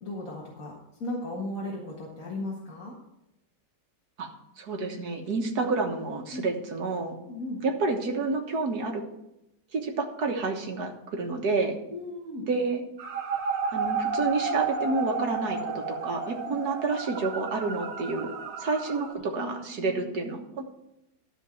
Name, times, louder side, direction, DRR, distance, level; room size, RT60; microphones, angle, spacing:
voice 1, 0.0-0.7 1.0-2.9 6.3-6.5 7.3-7.6 11.9-12.4 16.4-16.6 19.3-20.1, left 1 dB, 55° left, -4 dB, 2.1 m, -36 dB
voice 2, 4.6-7.2 7.6-9.0 9.7-11.8 12.5-12.8 13.7-20.7, right 3 dB, 65° right, 3 dB, 1.9 m, -29 dB
sound 1, 13.0-19.1, right 4 dB, 45° right, 1.2 m, -32 dB
13.5 x 4.5 x 7.7 m, 0.88 s
omnidirectional pair, 1.8 m